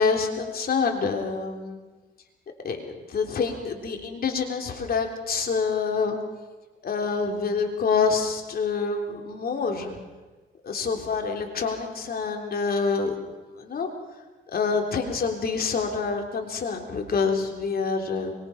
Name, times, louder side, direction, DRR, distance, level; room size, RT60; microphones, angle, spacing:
voice 1, 0.0-1.8 2.6-6.2 6.8-10.0 10.6-13.2 13.6-13.9 14.5-18.4, left 5 dB, 50° left, 3 dB, 3.5 m, -26 dB
24.0 x 22.0 x 5.9 m, 1.3 s
cardioid pair, 90°, 20 cm